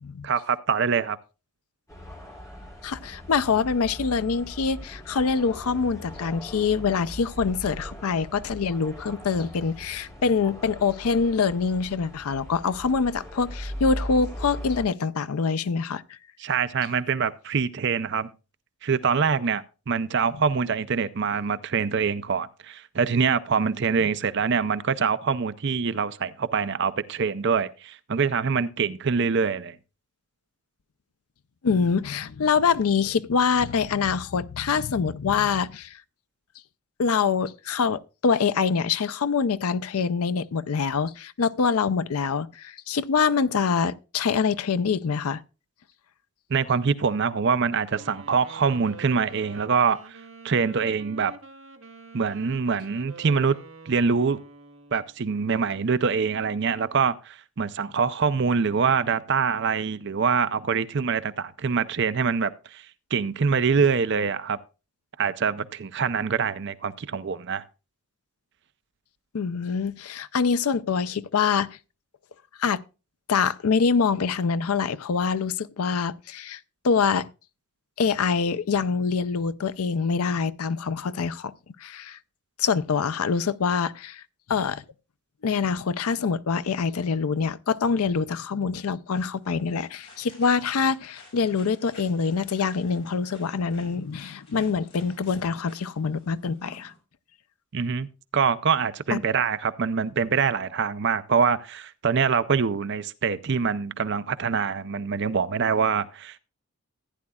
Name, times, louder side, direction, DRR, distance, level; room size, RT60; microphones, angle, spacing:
voice 1, 0.2-1.2 16.4-18.3 18.8-29.8 46.5-50.2 50.4-51.3 52.1-53.6 53.9-54.4 54.9-62.8 63.1-64.6 65.2-67.6 97.7-98.1 98.3-106.4, right 5 dB, 50° right, 0.5 m, -24 dB
sound 1, 1.9-14.8, equal, 15° left, 2.8 m, -39 dB
voice 2, 2.8-16.2 31.6-36.0 37.0-45.4 69.3-71.7 72.6-72.8 73.3-76.6 76.8-77.3 78.0-81.5 81.8-82.2 82.6-84.2 84.5-84.8 85.4-96.9 99.1-99.2, left 5 dB, 80° left, 0.5 m, -25 dB
Wind instrument woodwind instrument, 47.9-55.1, right 3 dB, 70° right, 1.2 m, -47 dB
sound 2, 89.4-97.0, left 2 dB, 50° left, 5.4 m, -52 dB
15.0 x 9.7 x 2.3 m
head